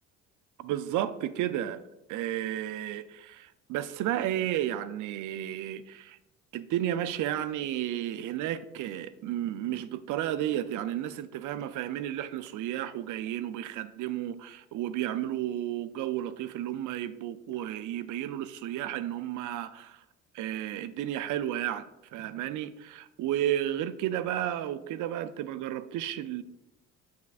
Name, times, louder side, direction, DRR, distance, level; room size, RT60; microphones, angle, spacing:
voice 1, 0.6-1.8 2.1-6.2 6.5-20.0 20.3-26.4, right 12 dB, 60° right, 0.5 m, -32 dB
7.3 x 5.9 x 2.4 m
hypercardioid pair, 60°, 35 cm